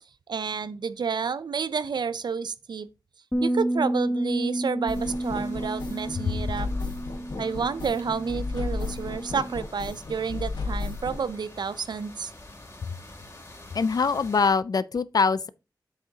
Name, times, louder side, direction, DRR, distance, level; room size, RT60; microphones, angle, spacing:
voice 1, 0.3-2.9 3.4-6.7 7.4-12.3, right 6 dB, 80° right, 0.5 m, -30 dB
Bass guitar, 3.3-9.6, right 1 dB, 10° left, 0.8 m, -31 dB
sound 1, 4.9-11.2, left 3 dB, 90° left, 1.3 m, -34 dB
sound 2, 4.9-14.5, left 2 dB, 40° left, 2.8 m, -48 dB
voice 2, 13.7-15.5, left 5 dB, 60° left, 0.4 m, -23 dB
8.1 x 6.5 x 2.8 m
wide cardioid pair, 85°, 7 cm